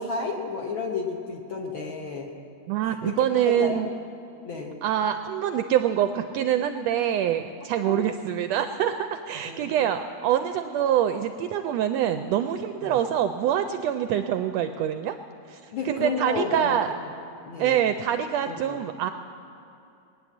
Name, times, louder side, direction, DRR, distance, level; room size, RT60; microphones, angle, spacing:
voice 1, 0.0-2.3 2.8-3.8 4.4-4.7 7.8-8.0 9.4-9.8 12.8-13.0 15.7-16.9 17.5-17.8 18.5-18.8, left 4 dB, 55° left, 0 dB, 1.5 m, -32 dB
voice 2, 2.7-3.9 4.8-15.2 15.5-15.6 15.8-16.9 17.6-19.1, right 10 dB, 80° right, 8 dB, 1.5 m, -25 dB
20.0 x 9.7 x 7.2 m, 2.6 s
omnidirectional pair, 3.4 m